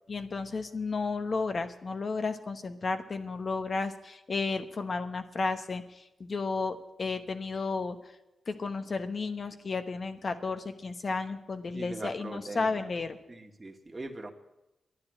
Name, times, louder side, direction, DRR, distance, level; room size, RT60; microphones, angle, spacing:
voice 1, 0.1-8.1 8.5-13.2, left 4 dB, 55° left, 8 dB, 1.1 m, -33 dB
voice 2, 11.7-12.9 13.3-14.3, right 2 dB, 30° right, 1 dB, 1.9 m, -41 dB
11.5 x 9.9 x 7.8 m, 0.95 s
cardioid pair, 55°, 0 cm